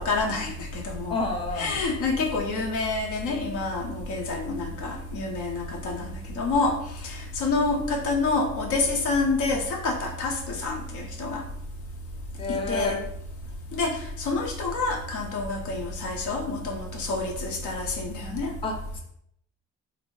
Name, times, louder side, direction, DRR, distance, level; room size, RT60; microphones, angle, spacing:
voice 1, 0.0-1.2 1.6-6.8 7.0-11.4 12.5-13.0 13.7-18.5, left 3 dB, 75° left, 1 dB, 0.7 m, -28 dB
voice 2, 1.1-1.8 12.4-13.0 18.6-19.0, left 3 dB, 20° left, 1 dB, 0.5 m, -30 dB
2.6 x 2.0 x 3.0 m, 0.72 s
cardioid pair, 90°, 30 cm